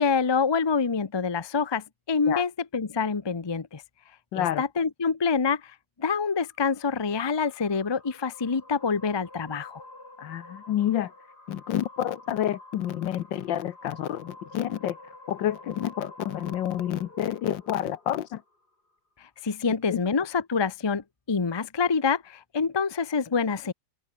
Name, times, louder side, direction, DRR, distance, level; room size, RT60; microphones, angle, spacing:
voice 1, 0.0-3.8 4.3-9.8 19.2-23.7, left 5 dB, 35° left, 0.4 m, -26 dB
voice 2, 4.3-4.6 10.2-11.1 11.5-15.0 15.3-18.4 19.9-20.0, left 11 dB, 75° left, 1.6 m, -29 dB
sound 1, 6.3-18.8, left 2 dB, 55° left, 8.5 m, -49 dB
open air
omnidirectional pair, 2.1 m